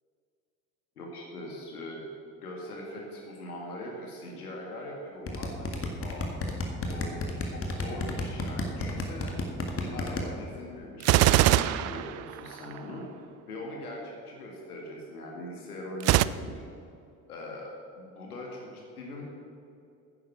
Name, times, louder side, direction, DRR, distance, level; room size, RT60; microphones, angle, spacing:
voice 1, 1.0-2.1 2.4-6.3 6.9-13.1 13.5-16.6 17.3-19.2, left 1 dB, 80° left, -1 dB, 2.0 m, -41 dB
sound 1, 5.3-10.2, left 2 dB, 30° left, 2.0 m, -31 dB
Gunshot gunfire, 11.0-12.8 16.0-16.2, right 15 dB, 35° right, 0.4 m, -22 dB
10.0 x 9.8 x 7.0 m, 2.5 s
figure-of-eight pair, 55°, 45 cm